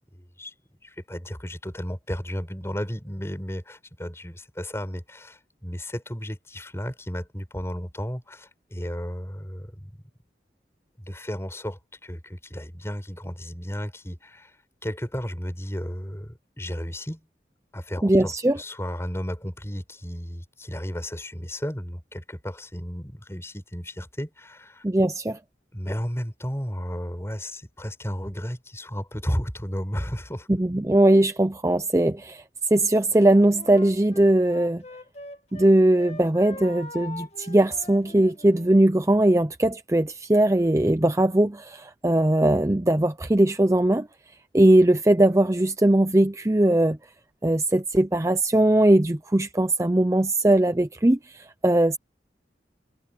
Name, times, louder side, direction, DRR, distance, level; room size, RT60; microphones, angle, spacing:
voice 1, 0.1-0.5 0.8-10.0 11.0-17.3 17.7-24.8 25.7-30.5, equal, 15° left, 6.9 m, -33 dB
voice 2, 18.0-18.6 24.8-25.4 30.5-32.4 32.7-34.8 35.5-44.1 44.5-47.0 47.4-52.0, right 1 dB, 15° right, 0.6 m, -20 dB
Wind instrument woodwind instrument, 33.1-35.7 35.9-38.7, left 2 dB, 35° left, 2.2 m, -43 dB
head